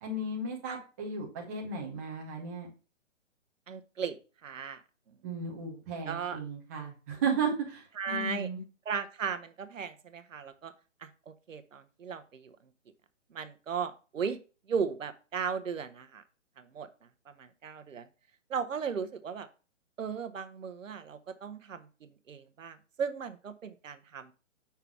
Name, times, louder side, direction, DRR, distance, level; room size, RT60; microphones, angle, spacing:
voice 1, 0.0-2.7 5.2-8.6, right 4 dB, 10° right, -1 dB, 0.7 m, -34 dB
voice 2, 3.7-4.2 4.4-4.8 6.1-6.4 8.0-8.5 8.9-10.7 11.0-12.6 13.3-14.4 14.7-16.2 16.6-16.9 17.3-18.1 18.5-19.5 20.0-24.3, right 6 dB, 75° right, 10 dB, 0.9 m, -36 dB
5.7 x 3.5 x 5.9 m, 0.34 s
hypercardioid pair, 155°, 38 cm